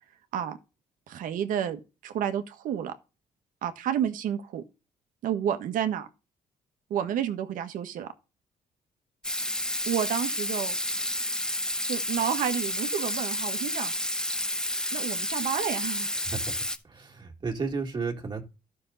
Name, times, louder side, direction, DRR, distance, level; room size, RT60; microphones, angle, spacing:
voice 1, 1.1-2.9 3.6-4.6 5.2-6.1 6.9-8.1 9.8-10.8 11.9-13.9 14.9-16.1, right 9 dB, 85° right, 1.5 m, -30 dB
Water tap faucet / Sink (filling or washing), 9.2-16.8, left 1 dB, 5° left, 1.3 m, -30 dB
voice 2, 16.1-16.6 16.8-18.4, right 4 dB, 35° right, 2.4 m, -33 dB
12.5 x 6.5 x 4.1 m
cardioid pair, 115°, 13 cm